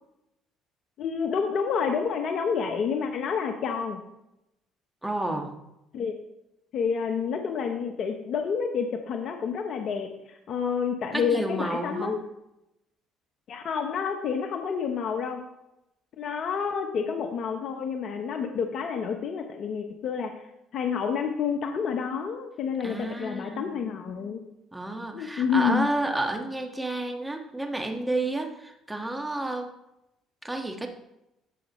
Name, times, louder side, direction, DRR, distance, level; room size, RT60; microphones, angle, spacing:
voice 1, 1.0-4.0 5.9-6.1 6.7-12.2 13.5-15.4 16.2-20.3 20.7-24.4 25.1-25.9, left 6 dB, 60° left, 5 dB, 0.9 m, -29 dB
voice 2, 5.0-5.6 11.1-12.2 22.8-23.8 24.7-29.7 30.4-30.9, right 2 dB, 10° right, 3 dB, 1.6 m, -30 dB
14.0 x 6.2 x 3.1 m, 0.88 s
supercardioid pair, 70°, 0 cm